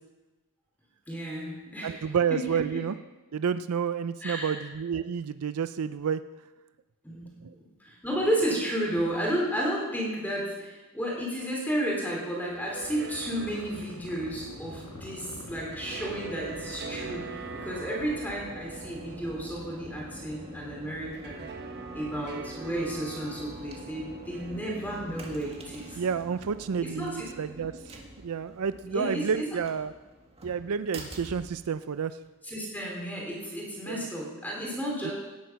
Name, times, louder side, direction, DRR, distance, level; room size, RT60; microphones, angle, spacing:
voice 1, 1.1-2.8 4.2-4.6 7.0-7.3 7.8-21.5 21.9-26.0 26.8-27.3 28.9-29.5 32.4-35.1, right 1 dB, 10° left, -3 dB, 3.0 m, -32 dB
voice 2, 1.8-3.0 3.3-6.2 7.4-7.5 25.9-27.7 28.2-29.9 30.4-32.2 33.9-34.1 35.0-35.1, right 7 dB, 75° right, 13 dB, 0.4 m, -30 dB
sound 1, 12.3-27.5, right 5 dB, 50° right, 1.1 m, -45 dB
sound 2, 12.8-18.2, left 2 dB, 85° left, 1.4 m, -46 dB
sound 3, 14.2-32.3, right 1 dB, 30° right, 1.9 m, -46 dB
18.0 x 8.5 x 5.8 m, 1.2 s
head